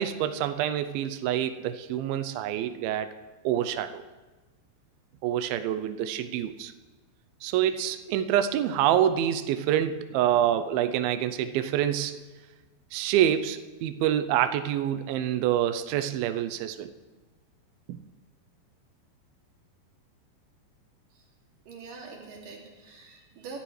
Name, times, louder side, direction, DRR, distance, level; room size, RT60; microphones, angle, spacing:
voice 1, 0.0-3.1 3.4-4.0 5.2-6.7 7.4-12.2 12.9-16.9 17.9-18.0, right 11 dB, 90° right, 10 dB, 2.1 m, -26 dB
voice 2, 21.7-23.6, right 4 dB, 55° right, -2 dB, 3.9 m, -44 dB
24.0 x 12.5 x 3.2 m, 1.2 s
omnidirectional pair, 4.9 m